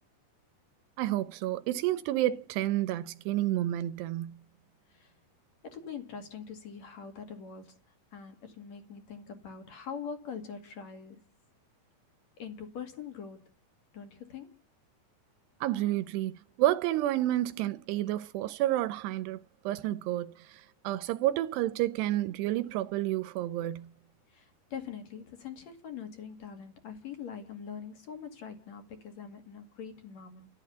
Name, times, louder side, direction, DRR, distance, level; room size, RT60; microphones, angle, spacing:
voice 1, 1.0-4.4 15.6-19.4 19.6-23.9, right 14 dB, 90° right, 3.0 m, -30 dB
voice 2, 5.6-7.8 8.1-11.3 12.4-13.5 13.9-14.6 24.3-30.5, left 7 dB, 50° left, 3.1 m, -43 dB
12.0 x 11.5 x 6.8 m
omnidirectional pair, 4.7 m